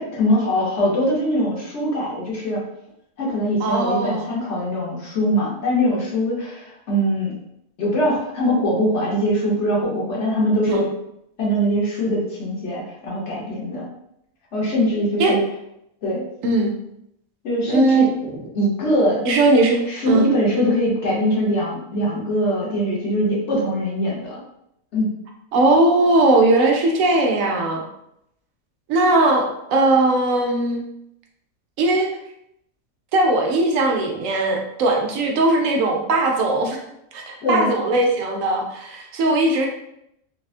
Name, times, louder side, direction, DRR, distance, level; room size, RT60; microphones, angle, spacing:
voice 1, 0.0-2.6 3.2-7.4 7.8-10.9 11.4-13.9 14.5-15.4 16.0-16.3 17.4-18.1 18.5-19.2 19.9-24.4 24.9-25.1 37.4-37.7, equal, 55° left, -4 dB, 1.2 m, -22 dB
voice 2, 3.6-4.3 10.7-10.8 15.2-15.4 16.4-16.7 17.7-18.4 19.2-20.3 25.5-27.8 28.9-30.8 31.8-32.1 33.1-36.8 37.1-39.7, right 2 dB, 75° right, 1 dB, 0.9 m, -19 dB
3.3 x 2.3 x 2.4 m, 0.79 s
omnidirectional pair, 1.5 m